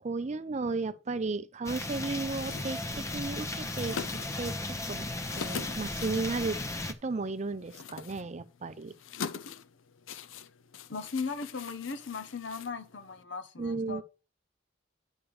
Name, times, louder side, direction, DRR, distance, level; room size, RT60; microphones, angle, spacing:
voice 1, 0.0-5.1 5.4-8.9 13.6-14.0, right 3 dB, 35° right, 0.5 m, -34 dB
sound 1, 1.6-6.9, left 2 dB, 15° left, 0.7 m, -36 dB
sound 2, 2.3-13.2, left 6 dB, 90° left, 0.6 m, -44 dB
voice 2, 10.9-14.0, left 4 dB, 65° left, 0.9 m, -37 dB
9.8 x 3.3 x 6.9 m
head